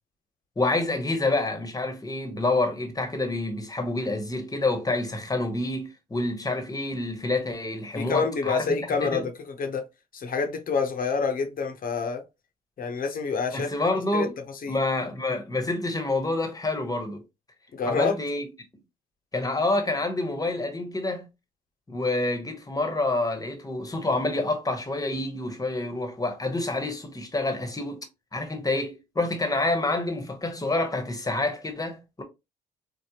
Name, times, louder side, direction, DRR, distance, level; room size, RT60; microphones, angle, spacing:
voice 1, 0.6-8.7 9.0-9.3 13.5-14.4 14.7-17.2 17.8-18.5 19.3-21.3 21.9-28.1 28.3-32.2, left 2 dB, 20° left, 1.1 m, -28 dB
voice 2, 7.9-9.3 9.6-9.8 10.1-12.2 12.8-13.7 14.1-14.3 14.6-14.8 17.7-18.2, left 5 dB, 50° left, 0.9 m, -27 dB
3.4 x 2.0 x 2.8 m
hypercardioid pair, 50°, 18 cm